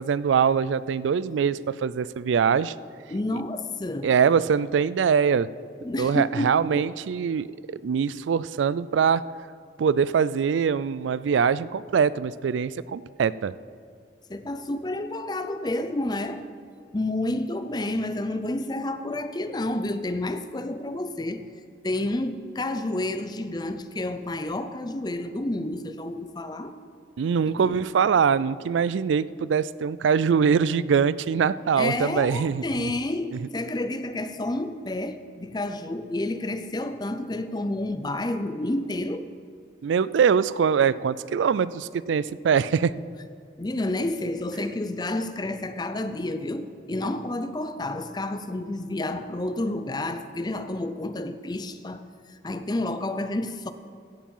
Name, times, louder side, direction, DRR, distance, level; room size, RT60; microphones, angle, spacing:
voice 1, 0.0-2.7 4.0-5.5 6.0-9.2 9.8-13.5 27.2-32.6 39.8-42.9, right 6 dB, 90° right, 18 dB, 0.3 m, -23 dB
voice 2, 3.1-4.1 5.8-6.9 14.3-16.5 16.9-21.5 21.8-26.7 27.5-27.8 31.8-39.3 43.6-53.7, left 1 dB, 20° left, 10 dB, 0.5 m, -30 dB
16.0 x 7.4 x 5.5 m, 2.3 s
head